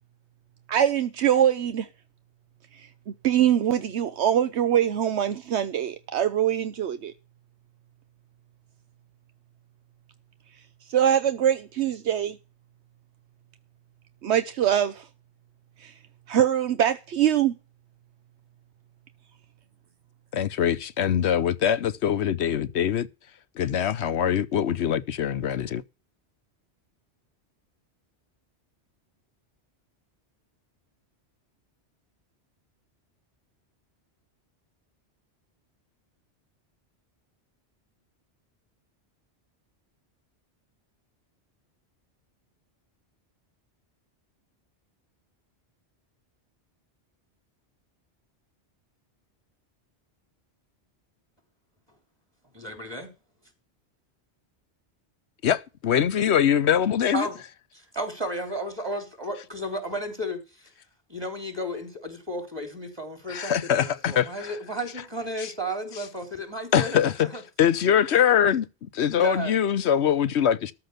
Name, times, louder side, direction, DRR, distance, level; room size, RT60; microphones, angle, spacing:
voice 1, 0.7-1.9 2.8-2.9 3.2-7.1 10.9-12.4 14.2-15.1 15.8-15.9 16.3-17.5, right 10 dB, 75° right, 1.0 m, -23 dB
voice 2, 20.3-23.1 23.5-25.8 55.4-57.3 63.3-64.5 65.4-65.5 66.7-67.3 67.6-70.7, left 9 dB, 75° left, 1.1 m, -23 dB
voice 3, 52.5-53.1 57.1-57.4 57.7-60.4 61.1-67.4 69.2-69.5, right 1 dB, 20° right, 3.5 m, -33 dB
13.5 x 5.0 x 8.1 m
omnidirectional pair, 1.1 m